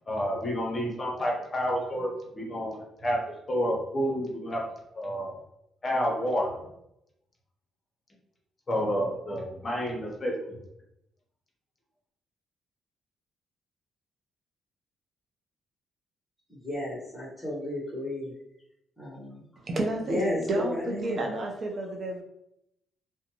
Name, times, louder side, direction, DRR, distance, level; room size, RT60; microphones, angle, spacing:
voice 1, 0.1-4.6 4.9-5.4 5.8-6.6 8.7-10.6, equal, 35° left, -1 dB, 0.9 m, -29 dB
voice 2, 16.5-18.3 19.0-19.4 20.1-21.2, left 1 dB, 10° left, -7 dB, 1.2 m, -33 dB
voice 3, 19.6-22.2, right 2 dB, 50° right, 2 dB, 0.6 m, -31 dB
2.5 x 2.2 x 2.9 m, 0.81 s
cardioid pair, 90°, 0 cm